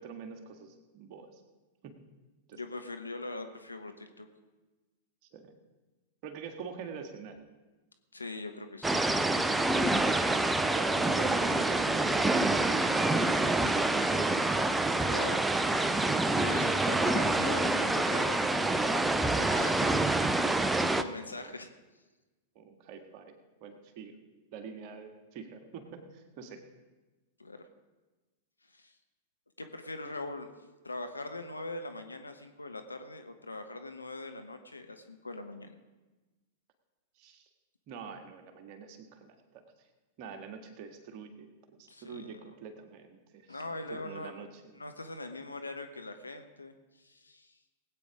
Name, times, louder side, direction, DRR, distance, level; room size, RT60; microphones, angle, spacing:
voice 1, 0.0-1.4 1.8-2.0 2.5-2.6 5.3-5.5 6.2-7.4 10.7-14.7 20.9-21.5 22.6-23.3 23.6-24.1 24.5-26.6 37.2-37.5 37.9-39.9 40.2-43.6 43.9-44.8, right 6 dB, 45° right, 4 dB, 1.8 m, -46 dB
voice 2, 2.5-4.3 8.1-9.0 15.0-15.4 16.4-18.4 18.7-19.0 19.3-19.8 20.6-21.7 27.4-27.7 28.7-28.9 29.6-30.5 30.8-35.8 41.9-42.4 43.5-44.5 44.7-47.5, left 2 dB, 90° left, 7 dB, 1.0 m, -42 dB
sound 1, 8.8-21.0, right 2 dB, 10° right, 0.6 m, -27 dB
18.5 x 8.9 x 5.0 m, 1.2 s
figure-of-eight pair, 100°, 0 cm